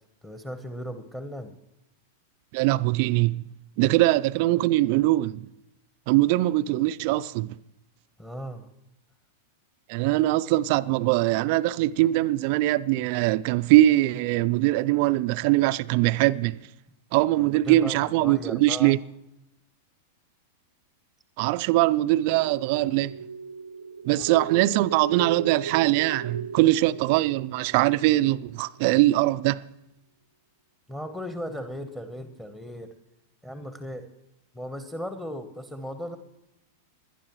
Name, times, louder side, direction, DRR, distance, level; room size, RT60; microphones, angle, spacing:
voice 1, 0.2-1.5 8.2-8.7 17.4-19.0 24.1-24.4 30.9-32.9 33.4-34.1 34.5-36.2, equal, 5° left, 1.2 m, -37 dB
voice 2, 2.5-3.4 3.8-5.5 6.1-7.6 9.9-16.5 17.1-19.0 21.4-23.1 24.0-29.6, right 17 dB, 50° right, 0.4 m, -22 dB
sound 1, 22.3-28.8, right 6 dB, 85° right, 0.7 m, -37 dB
20.5 x 11.5 x 3.1 m
figure-of-eight pair, 95°, 0 cm